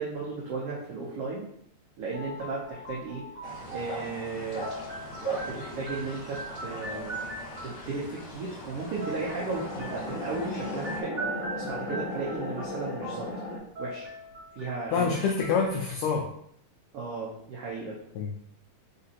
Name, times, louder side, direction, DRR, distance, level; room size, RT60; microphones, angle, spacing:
voice 1, 0.0-1.5 2.0-3.2 3.7-4.7 5.2-7.2 7.6-11.2 11.6-13.3 13.8-14.1 14.6-15.1 16.9-18.0, right 4 dB, 85° right, -4 dB, 1.3 m, -35 dB
sound 1, 2.1-8.0 9.0-15.9, right 2 dB, 45° right, 1.7 m, -41 dB
sound 2, 3.4-11.0, right 1 dB, 55° left, 1.1 m, -40 dB
sound 3, 8.9-13.6, left 2 dB, 40° left, 0.6 m, -36 dB
voice 2, 14.9-16.3 18.1-18.4, left 5 dB, 85° left, 0 dB, 1.5 m, -26 dB
4.2 x 3.9 x 2.8 m, 0.69 s
omnidirectional pair, 3.7 m